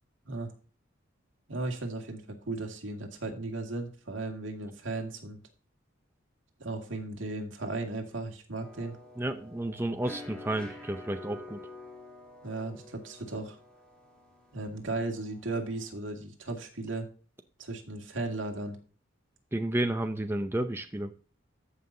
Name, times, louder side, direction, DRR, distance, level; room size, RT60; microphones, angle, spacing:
voice 1, 1.5-5.4 6.6-9.0 12.4-13.6 14.5-17.1 17.6-18.8, right 2 dB, 75° right, 3 dB, 2.1 m, -36 dB
sound 1, 8.6-16.0, left 2 dB, 5° left, 2.1 m, -49 dB
voice 2, 9.2-11.6 19.5-21.1, right 1 dB, 10° right, 7 dB, 0.5 m, -31 dB
14.5 x 5.7 x 2.7 m, 0.39 s
head